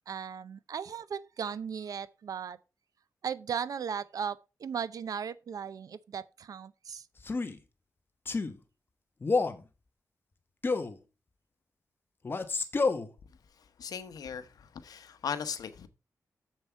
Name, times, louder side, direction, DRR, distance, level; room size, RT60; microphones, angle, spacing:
voice 1, 0.0-2.6 3.2-7.1, right 7 dB, 70° right, 0.6 m, -37 dB
Male speech man speaking, 7.2-7.6 8.3-8.5 9.2-9.6 10.6-11.0 12.2-13.1, left 3 dB, 35° left, 1.1 m, -29 dB
voice 2, 13.8-15.9, left 7 dB, 85° left, 1.0 m, -38 dB
7.5 x 7.3 x 4.5 m
wide cardioid pair, 105°, 6 cm